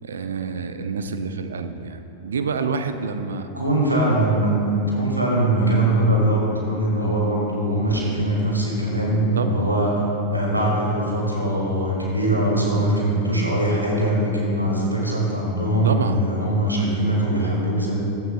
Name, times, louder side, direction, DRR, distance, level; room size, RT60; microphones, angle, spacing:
voice 1, 0.0-3.5 9.3-9.7 15.8-16.3, right 5 dB, 65° right, 8 dB, 0.6 m, -27 dB
voice 2, 3.5-9.9 10.3-17.9, right 1 dB, 85° right, -3 dB, 2.2 m, -21 dB
15.5 x 11.5 x 2.3 m, 2.9 s
figure-of-eight pair, 90°, 0 cm